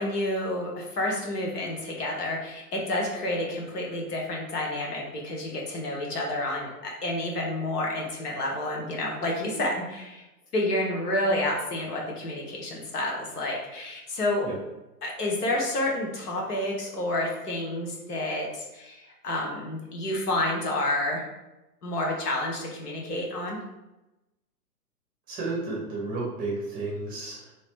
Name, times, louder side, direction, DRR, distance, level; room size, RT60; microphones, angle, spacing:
voice 1, 0.0-10.2 10.5-14.5 15.0-21.2 21.8-23.6, left 1 dB, 70° left, -1 dB, 1.2 m, -29 dB
voice 2, 25.3-27.5, right 3 dB, 20° right, -4 dB, 1.0 m, -32 dB
3.1 x 2.9 x 3.2 m, 0.98 s
hypercardioid pair, 125°, 48 cm